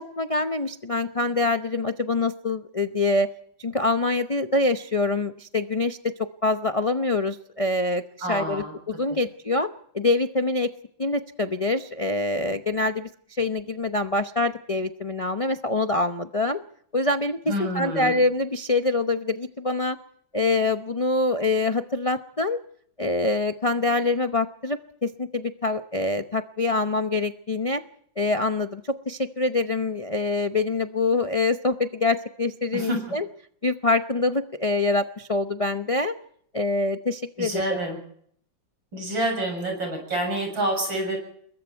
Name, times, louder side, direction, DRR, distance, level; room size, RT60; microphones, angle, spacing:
voice 1, 0.0-3.3 3.6-6.0 6.4-8.0 8.3-9.7 9.9-10.7 11.0-16.6 16.9-20.0 20.3-22.6 23.0-27.8 28.2-33.2 33.6-36.1 36.5-37.8, left 2 dB, 60° left, 7 dB, 0.3 m, -25 dB
voice 2, 8.2-8.7 9.1-9.2 17.5-18.1 32.7-33.0 37.4-38.0 38.9-41.2, right 1 dB, 80° right, 3 dB, 8.1 m, -27 dB
28.0 x 22.0 x 4.6 m, 0.65 s
omnidirectional pair, 2.1 m